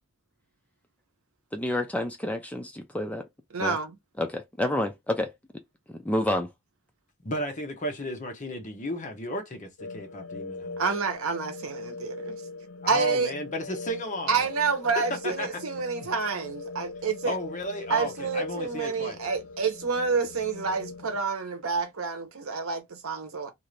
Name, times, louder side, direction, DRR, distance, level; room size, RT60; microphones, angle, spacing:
voice 1, 1.5-3.2 3.6-3.8 4.2-5.3 6.0-6.5, left 1 dB, 5° left, 0.3 m, -29 dB
voice 2, 3.5-3.9 10.8-12.4 12.9-13.3 14.3-17.4 17.9-23.5, right 4 dB, 80° right, 0.8 m, -28 dB
voice 3, 7.2-10.8 12.8-14.4 15.0-15.6 16.0-16.1 17.2-19.2, equal, 35° left, 0.8 m, -33 dB
sound 1, 9.8-21.2, left 3 dB, 85° left, 0.5 m, -41 dB
2.6 x 2.4 x 3.1 m
head